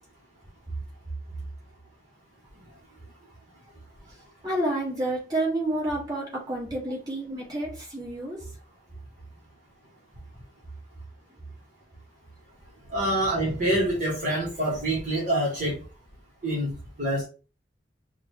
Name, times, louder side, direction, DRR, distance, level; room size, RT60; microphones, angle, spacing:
voice 1, 4.4-8.5, right 1 dB, 20° right, -4 dB, 2.1 m, -29 dB
voice 2, 12.9-15.8 16.4-17.2, right 1 dB, 45° right, -5 dB, 1.5 m, -26 dB
5.2 x 2.6 x 3.0 m, 0.34 s
head